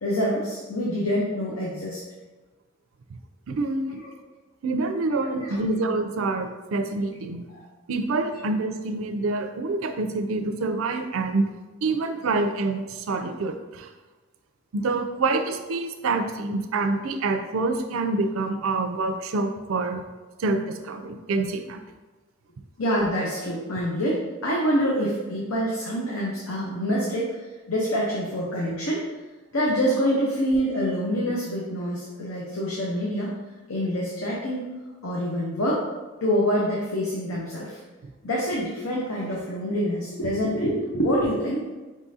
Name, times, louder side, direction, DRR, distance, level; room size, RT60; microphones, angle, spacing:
voice 1, 0.0-2.0 4.0-4.1 5.4-5.6 7.5-7.6 22.8-27.3 27.7-29.0 29.5-33.3 33.7-34.7 35.0-35.8 36.2-37.8 38.2-41.6, equal, 85° left, -5 dB, 0.8 m, -26 dB
voice 2, 3.5-4.0 4.6-7.4 7.9-11.4 11.8-13.9 14.7-20.0 20.4-21.8, right 3 dB, 70° right, 7 dB, 0.4 m, -26 dB
5.1 x 3.6 x 2.7 m, 1.2 s
head